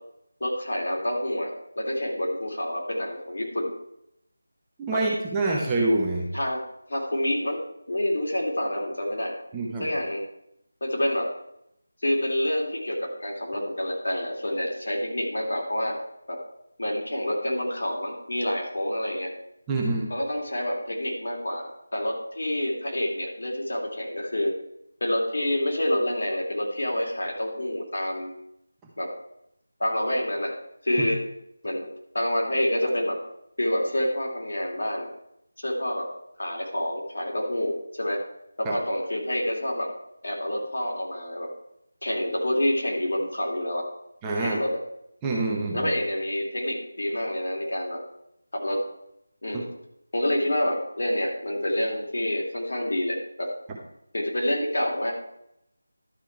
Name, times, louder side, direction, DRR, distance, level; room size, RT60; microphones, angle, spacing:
voice 1, 0.4-1.5 1.7-3.7 4.9-5.0 6.3-6.6 6.9-7.6 7.9-9.3 9.8-10.2 10.8-11.3 12.0-16.0 16.3-16.4 16.8-19.3 20.1-24.5 25.0-28.3 29.0-29.1 29.8-30.5 30.8-31.2 31.6-31.9 32.1-33.2 33.6-35.1 35.6-36.1 36.4-38.2 38.6-39.9 40.2-41.5 42.0-43.8 44.4-44.7 45.7-48.0 48.5-48.8 49.4-49.7 50.1-53.5 54.1-55.1, left 1 dB, 65° left, -1 dB, 2.8 m, -27 dB
voice 2, 4.8-6.3 9.5-9.9 19.7-20.1 31.0-31.1 32.8-32.9 38.6-38.8 44.2-44.6 45.2-45.9 49.5-49.6, right 2 dB, 10° right, -3 dB, 0.8 m, -26 dB
12.0 x 5.3 x 4.5 m, 0.79 s
figure-of-eight pair, 175°, 0 cm